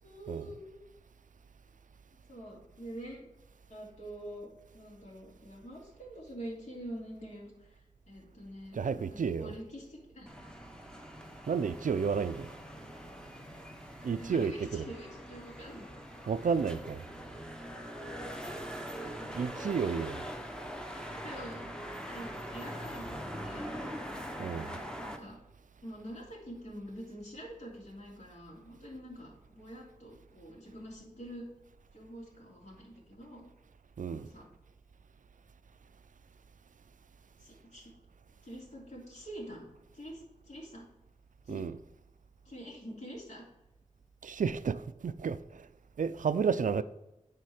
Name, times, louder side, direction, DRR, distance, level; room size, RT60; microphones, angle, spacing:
voice 1, 0.0-0.8 2.3-3.3 3.7-4.5 4.7-7.7 8.1-10.3 14.0-15.9 18.0-18.1 20.9-21.6 22.1-23.7 24.4-25.4 25.8-31.5 31.9-33.5 34.1-34.4 37.4-37.9 38.4-39.6 39.9-40.2 40.5-40.8 41.5-41.6 42.4-43.4, equal, 60° left, 2.9 m, -46 dB
voice 2, 8.7-9.5 11.5-12.5 14.0-14.9 16.3-17.0 19.3-20.3 24.4-24.7 34.0-34.3 41.5-41.8 44.2-45.4 46.0-46.8, right 6 dB, 90° right, 0.4 m, -31 dB
sound 1, 10.3-25.2, equal, 5° left, 0.9 m, -43 dB
9.9 x 3.8 x 4.9 m
wide cardioid pair, 80°, 13 cm